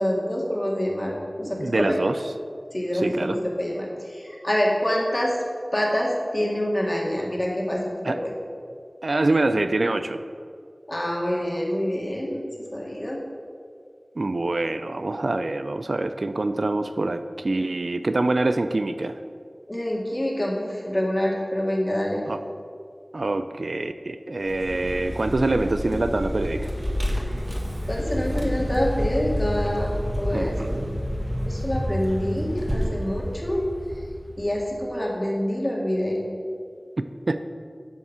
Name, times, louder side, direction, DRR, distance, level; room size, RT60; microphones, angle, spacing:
voice 1, 0.0-2.0 2.7-5.4 5.7-8.3 10.9-12.4 12.7-13.2 19.7-22.2 27.8-30.6 31.5-33.6 34.4-36.2, equal, 30° left, -3 dB, 1.9 m, -26 dB
voice 2, 1.5-2.1 3.0-3.4 8.1-8.2 9.0-10.2 14.2-19.1 22.3-22.4 23.1-26.7 30.3-30.8 37.3-37.4, right 2 dB, 80° right, 9 dB, 0.4 m, -25 dB
Vehicle, 24.4-34.8, equal, 25° right, 1.5 m, -29 dB
10.5 x 3.6 x 7.2 m, 2.2 s
wide cardioid pair, 50°, 0 cm